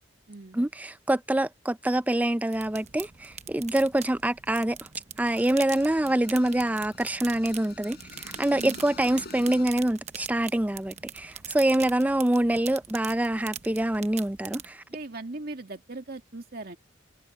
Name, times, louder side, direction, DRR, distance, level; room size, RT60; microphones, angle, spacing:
voice 1, 0.5-4.8 5.2-14.8, right 1 dB, 10° right, 0.4 m, -25 dB
sound 1, 2.5-14.7, right 9 dB, 40° right, 0.8 m, -43 dB
sound 2, 5.2-9.7, left 3 dB, 60° left, 4.0 m, -47 dB
voice 2, 14.9-16.8, right 2 dB, 55° right, 2.2 m, -39 dB
head